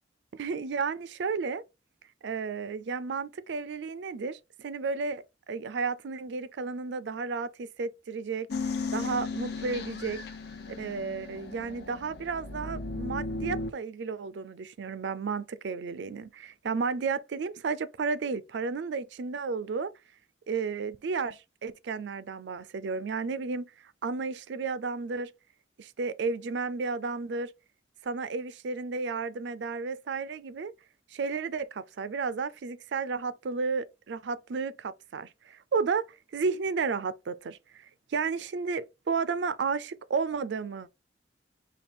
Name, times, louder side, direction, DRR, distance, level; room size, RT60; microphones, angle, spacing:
voice 1, 0.3-1.6 2.2-8.5 8.9-10.2 10.7-19.9 20.5-23.7 24.0-25.3 25.8-27.5 28.0-30.7 31.1-36.1 36.3-40.9, right 4 dB, 65° right, 0.4 m, -32 dB
sound 1, 8.5-13.7, left 3 dB, 60° left, 0.8 m, -36 dB
5.2 x 2.3 x 4.3 m
head